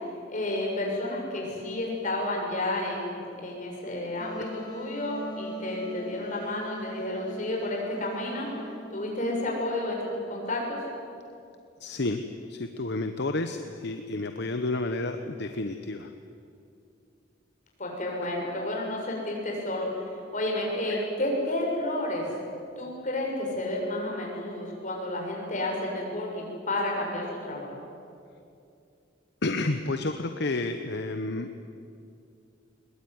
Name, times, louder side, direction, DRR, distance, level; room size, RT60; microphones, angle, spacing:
voice 1, 0.3-8.5 8.9-10.8 17.8-19.9 20.3-22.3 22.8-27.8, left 1 dB, 40° left, -1 dB, 6.7 m, -31 dB
Wind instrument woodwind instrument, 4.2-9.8, left 1 dB, 25° left, 2.4 m, -42 dB
voice 2, 11.8-12.2 12.5-16.1 20.9-21.0 29.4-31.5, left 2 dB, 60° left, 7 dB, 1.0 m, -30 dB
21.5 x 20.5 x 9.5 m, 2.5 s
head